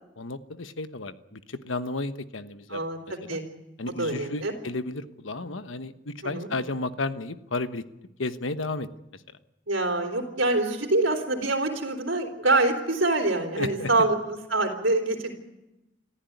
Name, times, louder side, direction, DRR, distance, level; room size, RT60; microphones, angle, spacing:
voice 1, 0.2-2.8 3.1-3.4 3.8-7.8 8.2-8.9 9.1-9.2 13.6-14.1, left 2 dB, 90° left, 11 dB, 1.2 m, -33 dB
voice 2, 2.7-3.5 4.0-4.5 6.2-6.5 9.7-15.3, right 2 dB, 85° right, 2 dB, 3.6 m, -25 dB
26.0 x 14.5 x 9.4 m, 0.98 s
head